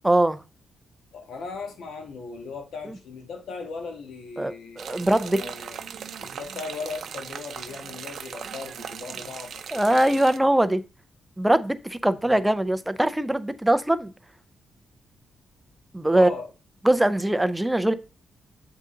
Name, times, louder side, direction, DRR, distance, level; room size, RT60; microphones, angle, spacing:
voice 1, 0.0-0.4 4.4-5.4 9.7-10.8 11.4-14.1 15.9-16.3 16.8-17.9, right 1 dB, 5° right, 0.4 m, -22 dB
voice 2, 1.1-4.8 5.2-5.8 6.2-10.2 12.2-12.4 16.1-16.5, left 4 dB, 90° left, 1.4 m, -38 dB
sound 1, 4.8-10.4, right 7 dB, 65° right, 0.6 m, -38 dB
7.8 x 3.8 x 3.7 m
wide cardioid pair, 145°, 0 cm